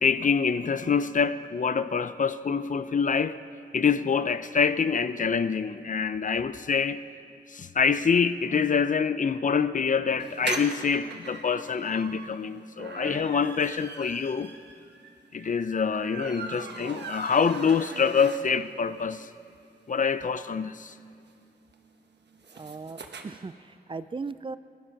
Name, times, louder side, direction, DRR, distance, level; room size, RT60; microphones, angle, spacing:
voice 1, 0.0-3.4 3.7-7.0 7.5-14.5 15.3-19.3 19.9-20.9, left 6 dB, 50° left, 13 dB, 0.5 m, -26 dB
sound 1, 10.2-18.8 19.2-19.3 19.5-19.6 19.8-23.2, right 4 dB, 80° right, 1.2 m, -40 dB
voice 2, 22.5-24.6, right 4 dB, 30° right, 14 dB, 0.4 m, -38 dB
21.0 x 11.5 x 5.8 m, 2.4 s
wide cardioid pair, 130°, 17 cm